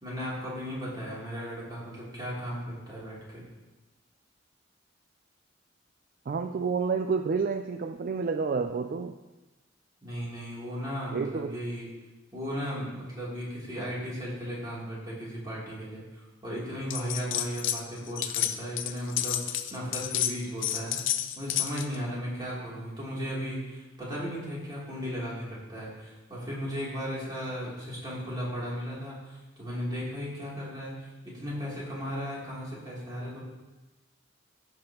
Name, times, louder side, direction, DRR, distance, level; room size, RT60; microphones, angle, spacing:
voice 1, 0.0-3.4 10.0-11.9 12.3-21.0 21.4-30.9 31.2-33.4, equal, 20° right, -7 dB, 3.0 m, -36 dB
voice 2, 6.3-9.1 11.1-11.6, right 5 dB, 45° right, 7 dB, 0.3 m, -29 dB
sound 1, 16.9-17.8 18.1-22.0, left 12 dB, 75° left, 0.5 m, -30 dB
16.5 x 5.8 x 2.9 m, 1.1 s
head